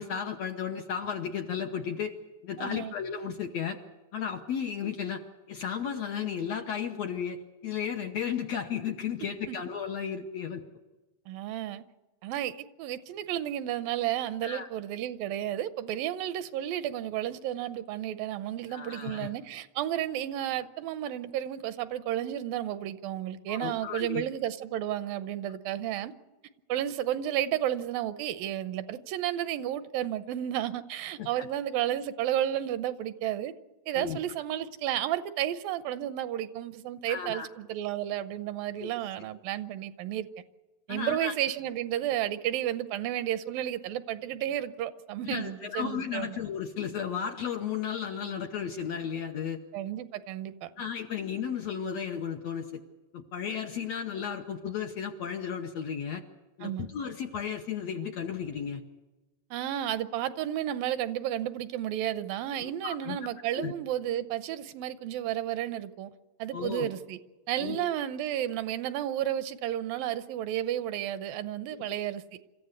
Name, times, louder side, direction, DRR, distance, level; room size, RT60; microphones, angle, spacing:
voice 1, 0.0-2.1 2.4-3.8 4.1-5.2 5.5-10.6 14.4-14.7 18.7-19.3 23.5-24.2 31.2-31.5 33.9-34.2 37.1-37.5 38.8-38.9 40.9-41.3 45.2-49.6 50.8-52.8 53.1-56.2 56.6-58.8 62.6-63.2 63.5-63.7 66.5-66.9 67.6-67.9, left 7 dB, 70° left, 4 dB, 1.7 m, -34 dB
voice 2, 2.6-2.9 9.5-9.6 11.3-11.8 12.2-26.1 26.7-33.5 33.9-40.3 40.9-46.4 49.7-50.7 56.6-56.9 59.5-66.1 66.4-67.2 67.5-72.2, right 12 dB, 80° right, 12 dB, 2.5 m, -32 dB
26.5 x 14.5 x 8.1 m, 1.2 s
omnidirectional pair, 4.1 m